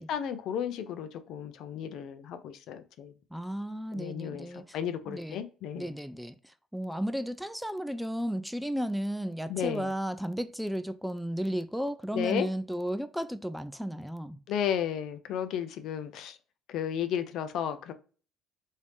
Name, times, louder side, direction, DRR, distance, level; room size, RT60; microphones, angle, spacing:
voice 1, 0.0-3.1 3.9-5.9 9.5-9.9 12.1-12.5 14.5-16.4 16.7-17.9, left 9 dB, 70° left, 0.5 m, -33 dB
voice 2, 3.3-4.8 5.1-5.4 5.8-14.4, equal, ahead, 0.3 m, -34 dB
3.2 x 2.7 x 3.2 m
supercardioid pair, 75°, 0 cm